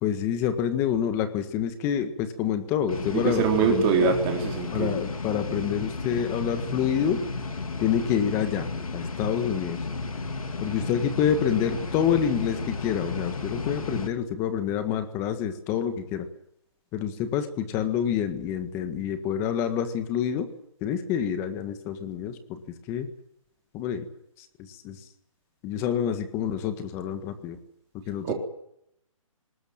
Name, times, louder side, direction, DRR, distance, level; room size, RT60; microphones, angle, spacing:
voice 1, 0.0-4.1 4.7-7.2 7.8-8.7 8.9-9.8 10.6-16.3 16.9-20.5 20.8-22.6 22.9-23.1 23.7-24.0 24.7-25.0 25.6-27.6 28.1-28.3, left 8 dB, 15° left, 9 dB, 1.7 m, -27 dB
sound 1, 2.9-14.1, left 3 dB, 85° left, 3.4 m, -33 dB
voice 2, 3.1-4.9 28.2-28.3, right 6 dB, 20° right, 2 dB, 3.9 m, -23 dB
20.0 x 19.5 x 9.0 m, 0.75 s
hypercardioid pair, 165°, 18 cm